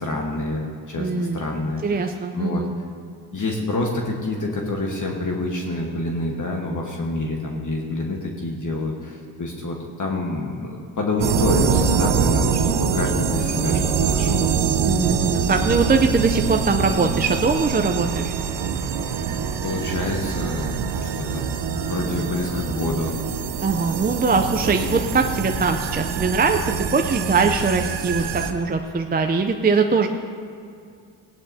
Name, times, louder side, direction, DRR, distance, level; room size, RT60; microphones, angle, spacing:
voice 1, 0.0-2.1 2.3-2.7 3.3-14.4 19.6-21.4 21.9-23.2, left 2 dB, 45° left, 0 dB, 1.4 m, -27 dB
voice 2, 1.0-1.4 1.8-2.7 14.8-18.3 23.6-30.1, right 4 dB, 20° right, 5 dB, 0.5 m, -21 dB
sound 1, 11.2-28.5, right 6 dB, 75° right, 0.9 m, -24 dB
16.0 x 10.5 x 2.8 m, 2.4 s
cardioid pair, 85°, 44 cm